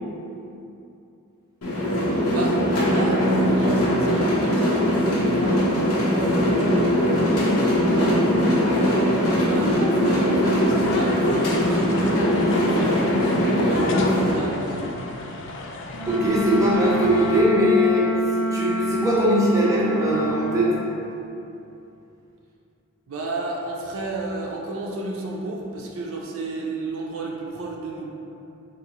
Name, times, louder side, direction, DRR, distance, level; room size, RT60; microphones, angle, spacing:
sound 1, 1.6-14.3, equal, 85° left, 0.7 m, -21 dB
voice 1, 2.3-6.9 7.3-8.3 8.7-13.3 13.6-14.9 23.1-28.1, right 2 dB, 70° right, -2 dB, 0.5 m, -32 dB
sound 2, 10.4-17.4, left 2 dB, 55° left, 0.3 m, -34 dB
Wind instrument woodwind instrument, 15.9-20.7, right 2 dB, 35° left, 0.7 m, -27 dB
voice 2, 16.1-18.1 18.5-20.7, equal, 15° right, -6 dB, 0.4 m, -20 dB
3.7 x 2.6 x 3.0 m, 2.8 s
head